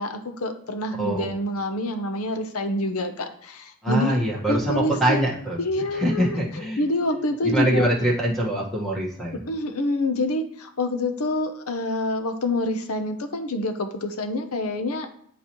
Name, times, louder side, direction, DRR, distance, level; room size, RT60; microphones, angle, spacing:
voice 1, 0.0-4.2 4.5-5.3 5.6-6.4 6.8-7.9 9.3-15.1, left 1 dB, 75° left, 7 dB, 0.8 m, -27 dB
voice 2, 3.8-5.6 5.9-6.8 7.4-9.4, right 1 dB, ahead, -5 dB, 1.4 m, -24 dB
10.5 x 4.2 x 3.0 m, 0.64 s
head